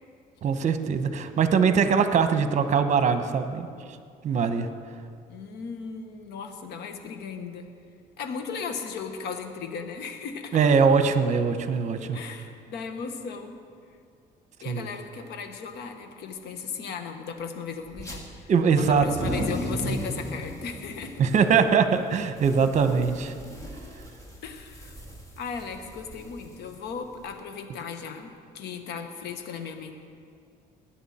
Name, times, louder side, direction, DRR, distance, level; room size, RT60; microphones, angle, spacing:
voice 1, 0.4-3.7 4.2-4.7 10.5-12.2 14.7-14.9 18.5-19.5 21.2-23.3, right 6 dB, 45° right, 9 dB, 1.0 m, -22 dB
voice 2, 5.3-7.7 8.2-10.6 12.1-13.6 14.6-21.2 24.4-24.9 25.4-29.9, left 5 dB, 75° left, 6 dB, 1.4 m, -36 dB
sound 1, 17.9-18.2 18.8-27.3, equal, 20° left, 2.1 m, -36 dB
20.0 x 9.1 x 4.3 m, 2.3 s
cardioid pair, 110°, 17 cm